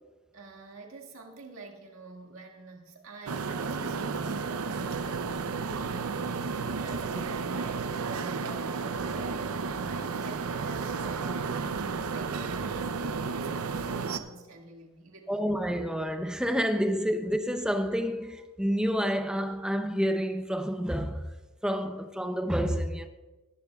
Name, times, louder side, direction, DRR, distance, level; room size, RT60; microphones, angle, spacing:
voice 1, 0.3-15.3, right 3 dB, 70° right, 2.0 m, -48 dB
sound 1, 3.3-14.2, right 4 dB, 85° right, 0.6 m, -32 dB
voice 2, 15.3-21.3 21.6-23.1, equal, 5° right, 0.6 m, -29 dB
21.0 x 10.5 x 2.4 m
head